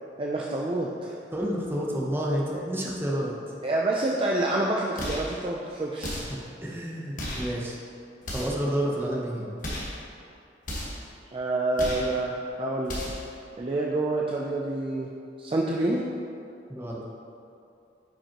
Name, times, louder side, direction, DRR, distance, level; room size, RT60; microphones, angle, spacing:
voice 1, 0.2-1.1 3.6-6.2 11.3-13.0 13.6-15.1 15.4-16.0, right 2 dB, 30° right, -2 dB, 0.4 m, -27 dB
voice 2, 1.3-3.5 6.0-7.8 8.3-9.6 16.7-17.0, equal, 10° right, -3 dB, 0.8 m, -30 dB
sound 1, 5.0-5.3 6.0-6.4 7.1-7.5 8.2-8.6 9.6-10.0 10.6-11.0 11.7-12.1 12.8-13.3, equal, 45° left, 1.4 m, -34 dB
8.8 x 5.3 x 2.9 m, 2.6 s
head